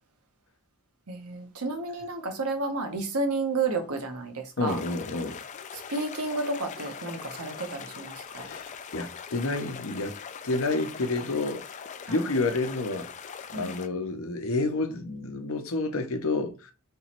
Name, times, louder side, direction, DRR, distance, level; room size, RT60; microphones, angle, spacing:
voice 1, 1.1-4.8 5.7-8.5 12.1-12.2 13.5-13.7, right 3 dB, 80° right, 0.9 m, -31 dB
voice 2, 4.6-5.4 8.3-10.2 10.4-11.6 12.1-13.1 13.5-16.7, left 3 dB, 65° left, 0.7 m, -29 dB
sound 1, 4.7-13.9, left 7 dB, 30° left, 0.3 m, -41 dB
3.5 x 3.0 x 4.3 m
head